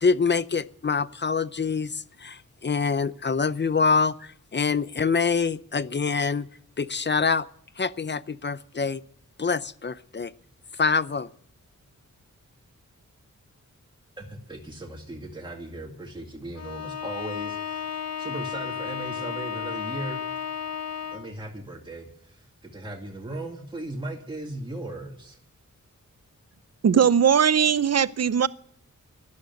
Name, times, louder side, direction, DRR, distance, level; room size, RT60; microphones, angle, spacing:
voice 1, 0.0-6.5 6.8-7.4 7.8-9.0 9.4-10.3 10.8-11.3, left 5 dB, 35° left, 17 dB, 0.6 m, -25 dB
voice 2, 14.2-20.2 21.1-25.4, right 1 dB, 15° right, 0 dB, 2.3 m, -37 dB
Bowed string instrument, 16.6-21.4, left 7 dB, 55° left, 1.1 m, -33 dB
voice 3, 26.8-28.5, right 7 dB, 55° right, 17 dB, 0.6 m, -19 dB
13.0 x 11.5 x 9.3 m, 0.68 s
wide cardioid pair, 105°, 31 cm